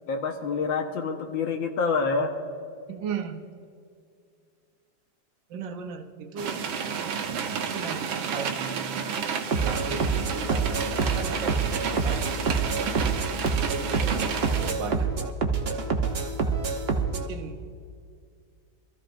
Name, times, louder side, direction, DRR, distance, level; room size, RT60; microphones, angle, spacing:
voice 1, 0.1-2.3, left 4 dB, 80° left, 3 dB, 1.9 m, -27 dB
voice 2, 2.9-3.5 5.5-6.7 7.7-12.4 13.6-15.3 15.7-15.9 17.3-17.6, right 6 dB, 70° right, 5 dB, 1.5 m, -37 dB
sound 1, 6.4-14.7, right 6 dB, 90° right, 1.7 m, -31 dB
sound 2, 9.5-17.3, right 4 dB, 45° right, 0.8 m, -27 dB
25.0 x 14.0 x 2.6 m, 2.3 s
omnidirectional pair, 2.1 m